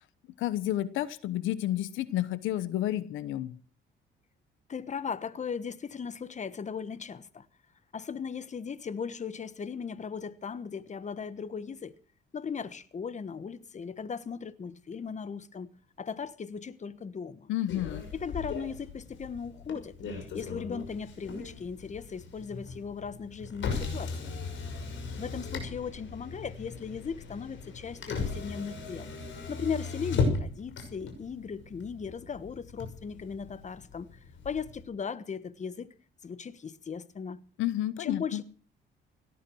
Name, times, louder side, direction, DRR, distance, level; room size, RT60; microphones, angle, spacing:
voice 1, 0.4-3.5 17.5-18.1 37.6-38.4, left 13 dB, 90° left, 1.0 m, -30 dB
voice 2, 4.7-7.5 7.9-11.9 12.3-15.7 16.0-17.5 18.1-24.3 25.2-29.1 29.5-34.2 34.4-35.9 36.2-37.4 38.0-38.4, left 6 dB, 35° left, 1.3 m, -37 dB
Motor vehicle (road), 17.7-34.8, left 4 dB, 70° left, 6.1 m, -37 dB
18.0 x 13.0 x 6.3 m
cardioid pair, 90°, 20 cm